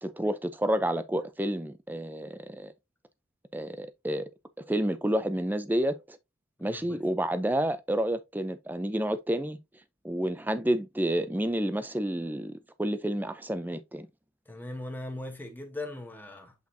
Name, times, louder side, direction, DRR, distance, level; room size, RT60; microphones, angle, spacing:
voice 1, 0.0-2.7 3.5-4.3 4.6-6.2 6.6-9.6 10.0-14.1, right 1 dB, 10° right, 0.5 m, -30 dB
voice 2, 6.6-7.0 14.5-16.5, left 2 dB, 10° left, 1.0 m, -39 dB
8.2 x 4.4 x 2.7 m
head